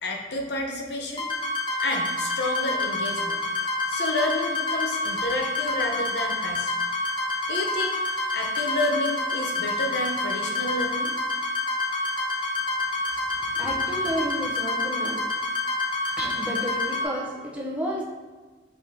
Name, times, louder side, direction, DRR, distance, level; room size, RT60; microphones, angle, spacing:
voice 1, 0.0-1.3 1.8-6.7 7.5-11.1, left 2 dB, 75° left, 2 dB, 0.6 m, -30 dB
sound 1, 1.2-17.0, left 2 dB, 30° left, 0.9 m, -28 dB
voice 2, 13.5-15.2 16.2-18.0, equal, 5° right, -4 dB, 0.7 m, -31 dB
4.2 x 3.4 x 3.6 m, 1.3 s
head